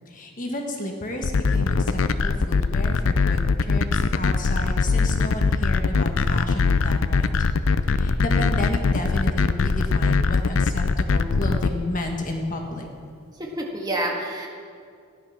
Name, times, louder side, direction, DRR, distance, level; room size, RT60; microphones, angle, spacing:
voice 1, 0.1-7.4 7.9-12.9, left 1 dB, 40° left, 2 dB, 1.5 m, -32 dB
sound 1, 1.2-11.7, left 4 dB, 75° left, 0.6 m, -21 dB
voice 2, 13.4-14.5, right 1 dB, 20° right, -1 dB, 1.8 m, -28 dB
15.5 x 11.0 x 5.9 m, 2.3 s
head